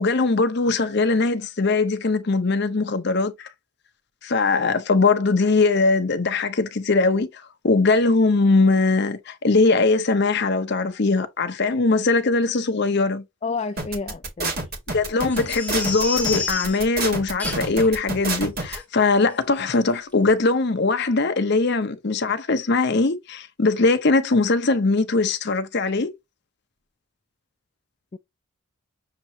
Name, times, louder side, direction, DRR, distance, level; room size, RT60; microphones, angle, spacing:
voice 1, 0.0-3.5 4.2-13.2 14.9-26.1, left 3 dB, 50° left, 0.7 m, -21 dB
voice 2, 13.4-14.5 28.1-28.2, left 4 dB, 30° left, 0.3 m, -30 dB
sound 1, 13.8-18.8, right 2 dB, 45° right, 1.9 m, -28 dB
Crying sobbing, 15.3-16.8 17.4-17.9 18.2-18.3 18.7-18.8 19.3-19.5 19.7-19.8, left 4 dB, 5° left, 1.0 m, -30 dB
6.8 x 2.9 x 2.7 m
head